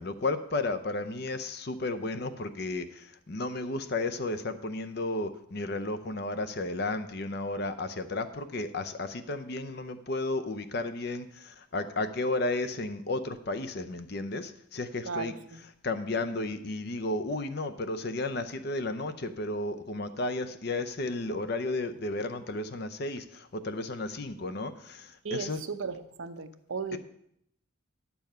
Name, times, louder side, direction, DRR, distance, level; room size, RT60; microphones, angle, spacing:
voice 1, 0.0-15.3 15.8-25.6 26.9-27.0, left 2 dB, 50° left, 11 dB, 0.6 m, -33 dB
voice 2, 15.0-15.6 25.2-27.0, right 4 dB, 75° right, 10 dB, 0.7 m, -36 dB
10.5 x 7.0 x 5.5 m, 0.71 s
head